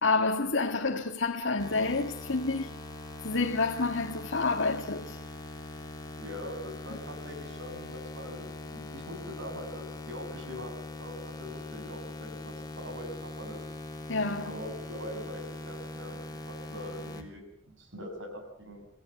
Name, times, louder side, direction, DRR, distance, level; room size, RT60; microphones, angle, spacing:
voice 1, 0.0-2.7 3.2-5.2 6.9-7.0 14.1-14.6, left 3 dB, 65° left, 1.9 m, -29 dB
sound 1, 1.6-17.2, left 2 dB, 20° left, 3.3 m, -42 dB
voice 2, 6.2-10.7 11.0-13.6 14.4-18.9, equal, 65° right, 6.9 m, -43 dB
28.5 x 17.0 x 7.2 m
head